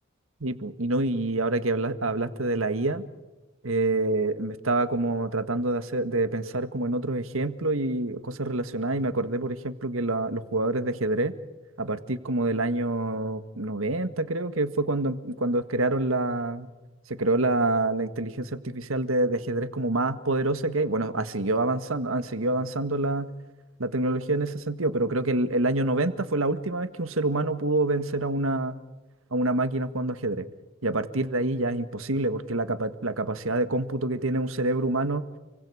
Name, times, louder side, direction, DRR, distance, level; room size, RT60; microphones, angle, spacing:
voice 1, 0.4-3.0 3.6-11.3 11.8-16.7 17.1-23.3 23.8-28.8 29.3-30.4 30.8-35.2, right 2 dB, 85° right, 10 dB, 1.7 m, -27 dB
30.0 x 24.0 x 5.0 m, 1.1 s
head